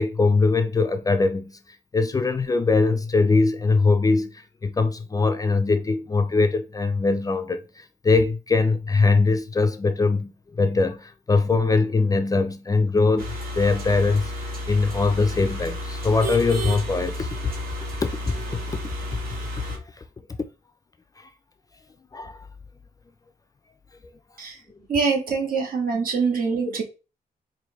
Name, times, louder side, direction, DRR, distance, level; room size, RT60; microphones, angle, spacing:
voice 1, 0.0-17.4 18.0-18.6 19.4-19.5 21.2-21.3 22.1-22.5, left 3 dB, 25° left, 0.3 m, -22 dB
sound 1, 13.2-19.8, equal, 85° right, 1.6 m, -32 dB
voice 2, 24.9-26.8, right 5 dB, 70° right, 1.4 m, -24 dB
4.7 x 2.5 x 3.0 m
wide cardioid pair, 165°, 15 cm